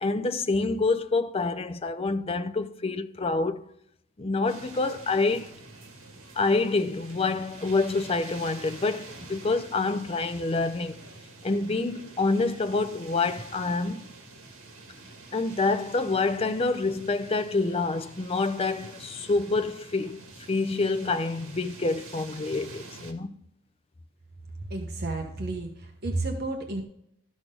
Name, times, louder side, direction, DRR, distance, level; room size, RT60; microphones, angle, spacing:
voice 1, 0.0-3.7 4.2-5.5 6.4-11.0 11.4-14.1 15.3-20.2 20.5-23.4, left 3 dB, 25° left, 0.5 m, -27 dB
sound 1, 4.5-23.1, right 3 dB, 80° right, 1.8 m, -47 dB
voice 2, 24.6-26.8, right 2 dB, 50° right, 1.2 m, -32 dB
13.0 x 6.1 x 3.9 m
head